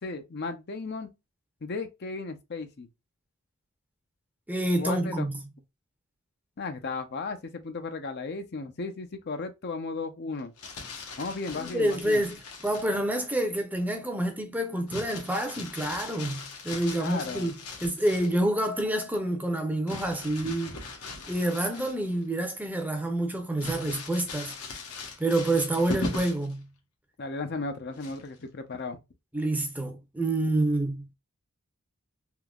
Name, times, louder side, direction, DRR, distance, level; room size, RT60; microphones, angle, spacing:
voice 1, 0.0-1.1 1.6-2.9 4.8-5.3 6.6-10.5 11.2-12.2 17.0-17.5 27.2-29.0, left 3 dB, 45° left, 0.6 m, -35 dB
voice 2, 4.5-5.4 11.5-12.4 12.6-20.8 21.3-24.5 25.2-26.7 29.3-31.1, right 1 dB, 5° right, 0.6 m, -28 dB
Crumpling crinkling, 10.4-13.0 14.9-18.4 19.9-22.2 22.6-22.7 23.6-26.5 28.0-28.4, left 3 dB, 80° left, 1.1 m, -40 dB
3.7 x 2.8 x 2.3 m
head